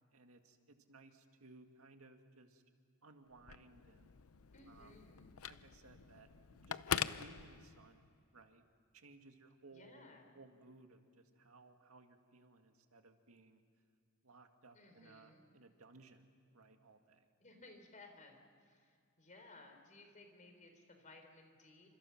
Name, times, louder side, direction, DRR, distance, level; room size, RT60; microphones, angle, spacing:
voice 1, 0.1-2.6 3.0-4.1 4.7-5.0 5.5-8.0 8.3-8.6 8.9-10.0 10.3-13.6 14.2-16.3 16.5-17.3, right 3 dB, 85° right, 5 dB, 2.0 m, -61 dB
Telephone, 3.3-8.1, left 8 dB, 85° left, 0.7 m, -43 dB
voice 2, 4.5-5.4 9.7-10.3 14.7-15.4 17.4-21.9, left 2 dB, 35° left, 5 dB, 4.0 m, -59 dB
28.5 x 27.0 x 5.9 m, 2.2 s
head